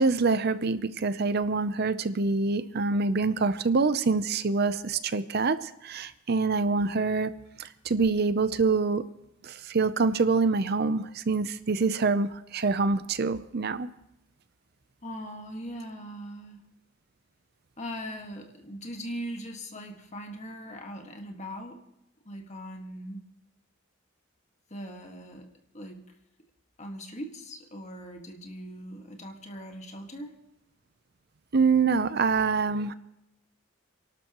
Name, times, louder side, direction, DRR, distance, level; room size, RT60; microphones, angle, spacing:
voice 1, 0.0-7.3 7.6-9.0 9.4-13.9 31.5-32.9, right 4 dB, 50° right, 13 dB, 0.6 m, -25 dB
voice 2, 15.0-16.6 17.8-21.8 22.2-23.2 24.7-25.5 25.7-26.0 26.8-30.3, equal, 35° left, 3 dB, 1.8 m, -40 dB
28.0 x 12.0 x 3.0 m, 0.83 s
head